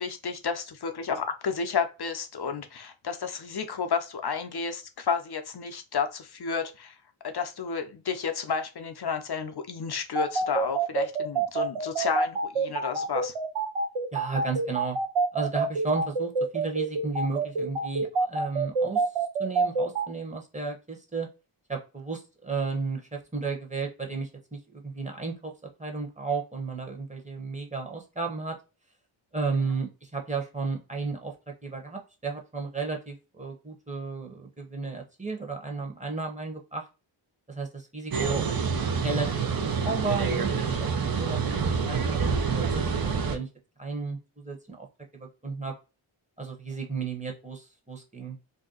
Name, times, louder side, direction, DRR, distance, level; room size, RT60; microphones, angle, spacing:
voice 1, 0.0-7.0 7.2-13.3, left 6 dB, 50° left, 8 dB, 0.6 m, -31 dB
sound 1, 10.1-20.1, right 4 dB, 80° right, 0.8 m, -26 dB
voice 2, 14.1-15.0 15.3-19.1 19.4-21.3 21.7-28.6 29.3-36.9 37.5-39.3 39.6-41.5 41.8-43.5 43.8-44.9 45.1-45.7 46.4-48.4, right 4 dB, 15° right, 1 dB, 0.9 m, -33 dB
sound 2, 38.1-43.4, right 5 dB, 45° right, 0.6 m, -27 dB
2.7 x 2.2 x 3.8 m, 0.30 s
wide cardioid pair, 60°, 50 cm